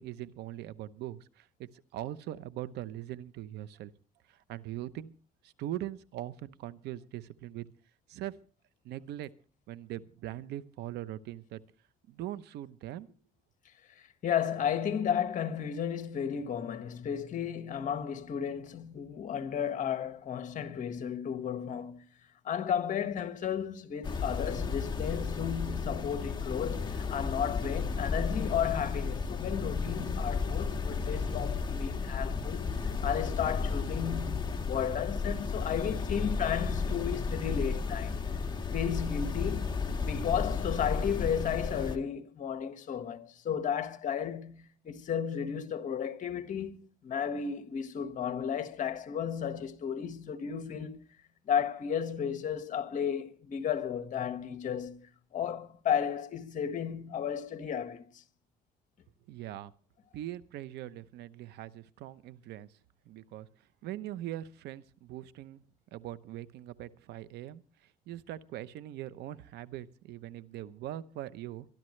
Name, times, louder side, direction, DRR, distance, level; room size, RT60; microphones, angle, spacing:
voice 1, 0.0-3.9 4.3-5.1 5.4-7.7 8.1-8.3 8.8-9.3 9.7-11.6 12.1-13.1 59.3-59.7 60.1-62.7 63.1-63.5 63.8-65.6 65.9-67.6 68.1-71.7, right 13 dB, 80° right, 0.9 m, -41 dB
voice 2, 14.0-22.0 22.4-38.2 38.7-51.1 51.4-55.1 55.3-58.2, left 8 dB, 50° left, 1.7 m, -33 dB
sound 1, 24.0-42.0, left 5 dB, 25° left, 1.7 m, -33 dB
24.0 x 12.0 x 3.3 m
cardioid pair, 110°, 17 cm